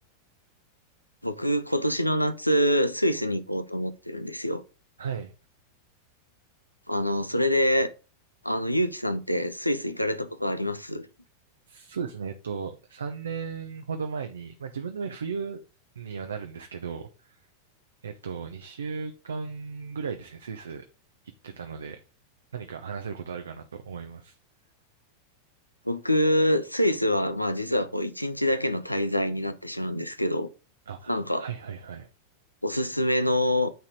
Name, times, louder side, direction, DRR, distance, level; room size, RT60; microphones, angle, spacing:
voice 1, 1.2-4.6 6.9-7.9 8.4-11.1 25.8-30.5 31.1-31.5 32.6-33.7, equal, 90° left, 0.7 m, -26 dB
voice 2, 5.0-5.3 11.7-15.6 16.0-17.4 18.0-20.8 21.4-22.0 22.5-24.4 30.9-32.1, right 6 dB, 70° right, 0.7 m, -36 dB
9.3 x 4.2 x 3.7 m
figure-of-eight pair, 90°, 0 cm